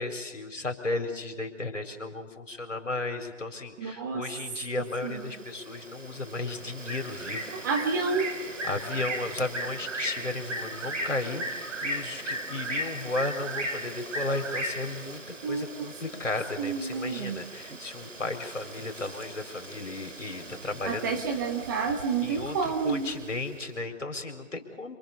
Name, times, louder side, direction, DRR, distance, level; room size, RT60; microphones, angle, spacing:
voice 1, 0.0-7.7 8.6-21.4 22.2-25.0, left 2 dB, 70° left, 4 dB, 4.5 m, -34 dB
voice 2, 3.8-4.2 5.0-5.2 7.6-8.4 15.4-15.9 16.6-17.4 20.9-23.1, right 5 dB, 15° right, 4 dB, 1.2 m, -29 dB
Bird, 4.8-23.5, right 1 dB, 70° right, 3.3 m, -37 dB
27.0 x 25.5 x 6.8 m, 1.2 s
figure-of-eight pair, 145°, 38 cm